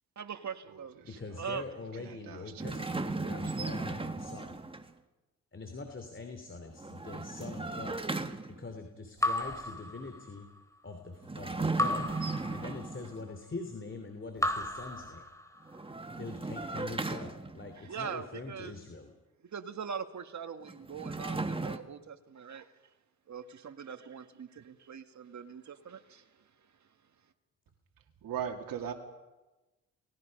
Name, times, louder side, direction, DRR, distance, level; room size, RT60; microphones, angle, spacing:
voice 1, 0.2-1.0 1.4-1.6 17.8-18.7 19.4-22.7 23.3-26.5 26.8-26.9, right 7 dB, 55° right, 7 dB, 2.0 m, -42 dB
voice 2, 1.0-4.5 5.5-8.0 8.5-10.5 10.8-12.1 12.5-15.2 16.2-19.1, left 3 dB, 35° left, 6 dB, 3.0 m, -43 dB
voice 3, 2.0-2.7 3.2-3.3 28.2-28.9, right 8 dB, 70° right, 2 dB, 2.3 m, -38 dB
sound 1, 2.6-4.9 6.7-8.7 11.2-13.3 15.6-17.8 20.7-21.8, right 3 dB, 15° right, 1.7 m, -36 dB
Raindrop / Drip, 9.2-10.6 11.8-13.2 14.4-15.8, left 1 dB, 10° left, 3.1 m, -34 dB
29.0 x 19.5 x 5.4 m, 1.1 s
supercardioid pair, 65°, 35 cm